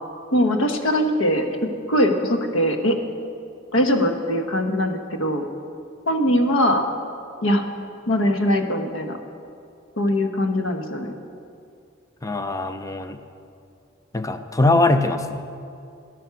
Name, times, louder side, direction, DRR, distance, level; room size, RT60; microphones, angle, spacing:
voice 1, 0.3-1.5 1.9-3.0 3.7-5.4 6.1-6.8 7.4-7.6 8.1-9.2 10.0-11.1, equal, 90° left, 5 dB, 1.1 m, -21 dB
voice 2, 12.2-13.2 14.1-15.5, left 2 dB, 15° left, 9 dB, 0.5 m, -21 dB
12.0 x 9.4 x 5.8 m, 2.5 s
head